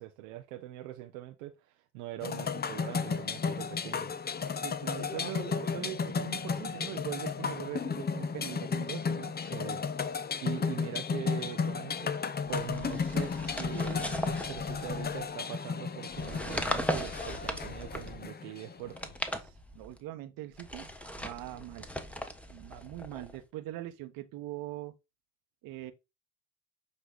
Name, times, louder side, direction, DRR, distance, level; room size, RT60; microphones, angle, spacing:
voice 1, 0.0-4.1 9.4-9.8 10.1-12.1 12.5-19.1, right 14 dB, 85° right, 0.8 m, -42 dB
sound 1, 2.2-19.0, left 5 dB, 25° left, 0.8 m, -34 dB
voice 2, 4.6-9.3 19.4-20.9 21.2-21.9 22.5-24.9 25.6-25.9, right 15 dB, 70° right, 1.1 m, -41 dB
sound 2, 12.5-15.3 16.1-18.3 18.8-20.0 20.5-23.4, equal, 5° left, 1.2 m, -38 dB
8.3 x 3.3 x 3.9 m
hypercardioid pair, 65°, 36 cm